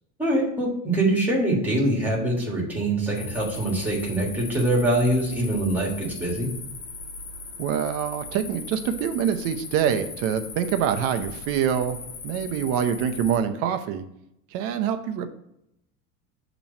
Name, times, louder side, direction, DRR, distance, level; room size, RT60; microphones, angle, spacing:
voice 1, 0.2-6.5, right 1 dB, 5° right, -3 dB, 1.5 m, -24 dB
sound 1, 3.2-13.4, left 3 dB, 70° left, 1.2 m, -38 dB
voice 2, 7.6-12.0 12.2-14.0 14.5-15.3, right 8 dB, 40° right, 8 dB, 0.6 m, -25 dB
7.1 x 3.0 x 5.2 m, 0.79 s
cardioid pair, 165°, 35 cm